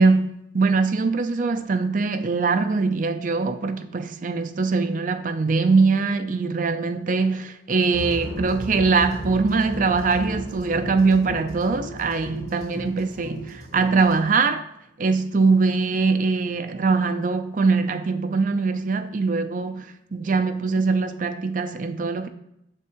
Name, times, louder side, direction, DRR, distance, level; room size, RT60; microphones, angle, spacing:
voice 1, 0.0-14.6 15.0-22.3, right 4 dB, 45° right, 0.4 m, -22 dB
sound 1, 7.9-14.2, equal, 35° left, 2.2 m, -35 dB
7.4 x 3.6 x 4.4 m
head